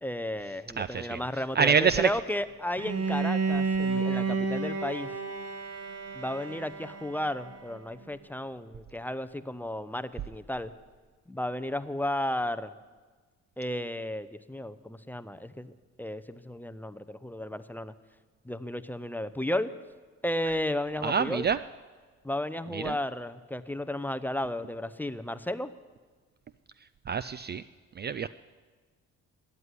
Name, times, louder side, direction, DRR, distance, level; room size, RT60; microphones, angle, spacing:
voice 1, 0.0-5.1 6.1-10.7 11.3-12.7 13.6-15.7 16.0-17.9 18.4-19.7 20.2-21.5 22.2-25.7, left 1 dB, 5° left, 13 dB, 0.6 m, -33 dB
voice 2, 0.8-1.2 1.6-2.1 21.0-21.6 22.7-22.9 27.1-27.6 28.0-28.3, right 6 dB, 35° right, 15 dB, 0.4 m, -26 dB
Bowed string instrument, 2.8-7.8, right 4 dB, 55° right, 1.9 m, -31 dB
13.5 x 9.6 x 9.9 m, 1.4 s
cardioid pair, 90°, 30 cm